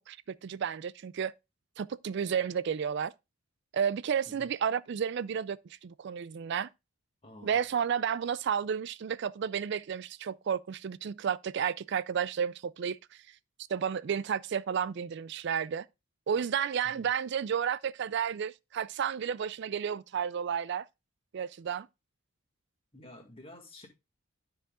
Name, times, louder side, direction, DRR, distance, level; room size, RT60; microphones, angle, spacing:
voice 1, 0.4-1.3 1.8-3.1 3.7-5.6 5.8-6.7 7.4-13.0 13.7-15.9 16.3-20.9 21.3-21.9, right 7 dB, 55° right, 0.3 m, -32 dB
voice 2, 7.2-7.6 16.8-17.1 22.9-23.9, left 1 dB, 25° left, 2.0 m, -51 dB
13.0 x 4.8 x 2.4 m
head